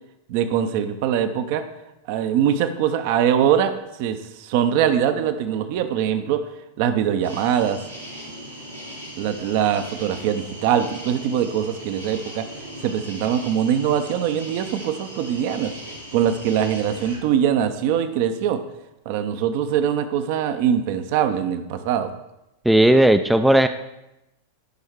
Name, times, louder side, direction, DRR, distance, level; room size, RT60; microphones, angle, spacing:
voice 1, 0.3-1.6 2.1-6.4 6.8-7.8 9.2-12.4 12.8-15.7 16.1-18.6 19.1-22.1, right 9 dB, 45° right, 10 dB, 0.6 m, -22 dB
sound 1, 7.2-17.2, equal, 85° right, 2.8 m, -39 dB
voice 2, 22.7-23.7, right 1 dB, 5° right, 9 dB, 0.3 m, -15 dB
11.5 x 5.4 x 3.6 m, 0.91 s
figure-of-eight pair, 90°, 0 cm